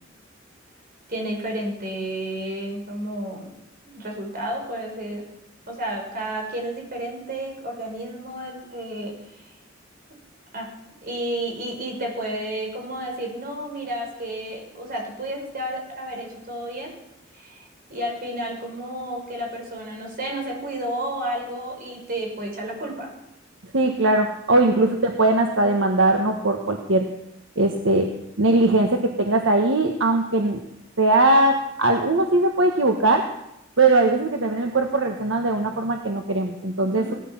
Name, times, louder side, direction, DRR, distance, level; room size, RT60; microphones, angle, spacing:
voice 1, 1.1-3.5 3.8-5.2 5.7-9.4 10.5-10.7 11.0-17.0 17.3-23.1 24.7-24.8 36.8-37.2, right 1 dB, 50° right, 1 dB, 5.5 m, -31 dB
voice 2, 23.7-27.0 27.6-28.1 28.4-30.6 31.0-33.2 33.8-37.2, right 2 dB, 75° right, 3 dB, 1.5 m, -20 dB
18.0 x 13.0 x 6.0 m, 0.84 s
head